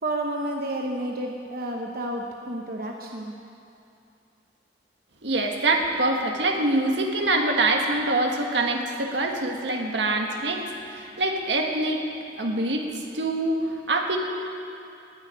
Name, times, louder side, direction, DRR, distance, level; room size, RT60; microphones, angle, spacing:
voice 1, 0.0-3.3, right 1 dB, 55° right, 1 dB, 1.0 m, -30 dB
voice 2, 5.2-12.0 12.4-14.2, right 2 dB, 80° right, 2 dB, 1.6 m, -25 dB
18.5 x 6.7 x 9.7 m, 2.7 s
head